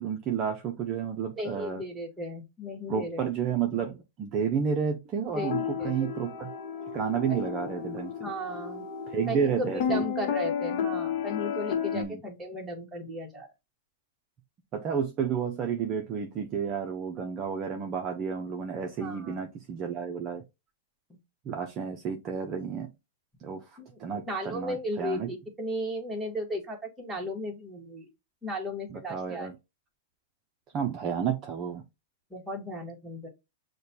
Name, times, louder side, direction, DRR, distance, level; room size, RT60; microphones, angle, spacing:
voice 1, 0.0-1.8 2.9-6.5 6.9-8.1 9.1-10.1 11.9-12.2 14.7-20.4 21.5-22.9 23.4-23.6 24.0-25.3 28.9-29.5 30.7-31.8, right 7 dB, 30° right, 0.6 m, -31 dB
voice 2, 1.4-3.2 5.3-5.9 8.2-8.8 9.3-13.5 19.0-19.4 23.8-23.9 24.3-28.1 28.4-29.5 32.3-33.3, equal, 5° right, 1.2 m, -35 dB
sound 1, 5.3-12.0, left 7 dB, 50° left, 0.8 m, -32 dB
6.4 x 2.2 x 2.7 m
hypercardioid pair, 145°, 0 cm